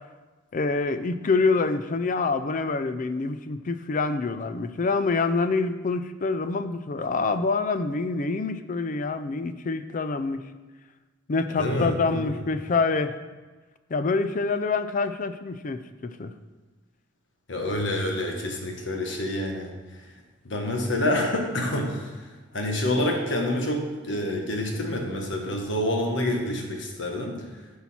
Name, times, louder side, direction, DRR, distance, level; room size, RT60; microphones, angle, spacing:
voice 1, 0.5-10.4 11.3-13.2 13.9-16.3, left 4 dB, 40° left, 11 dB, 0.5 m, -26 dB
voice 2, 11.6-12.4 17.5-20.0 20.4-22.3 22.5-27.4, left 1 dB, 65° left, 2 dB, 1.5 m, -27 dB
10.5 x 5.6 x 4.3 m, 1.3 s
head